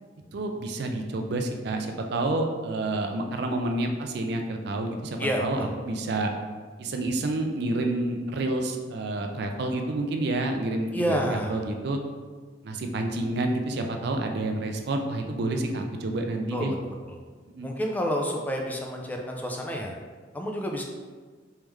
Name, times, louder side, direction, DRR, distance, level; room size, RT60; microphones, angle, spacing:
voice 1, 0.3-6.3 6.8-12.0 12.6-16.7 17.6-17.7, right 2 dB, 65° right, 4 dB, 0.4 m, -29 dB
voice 2, 5.2-5.7 10.9-11.6 16.5-16.8 17.0-17.2 17.6-20.0 20.3-20.8, equal, 10° left, 1 dB, 0.4 m, -29 dB
3.5 x 3.2 x 3.1 m, 1.4 s
head